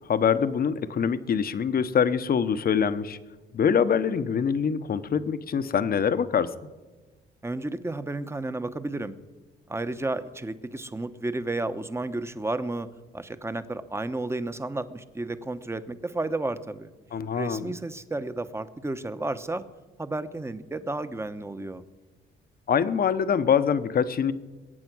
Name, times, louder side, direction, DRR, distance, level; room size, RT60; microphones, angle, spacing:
voice 1, 0.1-3.2 3.5-6.5 17.1-17.7 22.7-24.3, left 7 dB, 50° left, 12 dB, 1.0 m, -24 dB
voice 2, 7.4-9.1 9.7-12.9 13.1-16.9 17.3-19.6 20.0-21.8, right 2 dB, 15° right, 11 dB, 1.0 m, -32 dB
21.5 x 8.9 x 6.2 m, 1.2 s
cardioid pair, 90°, 20 cm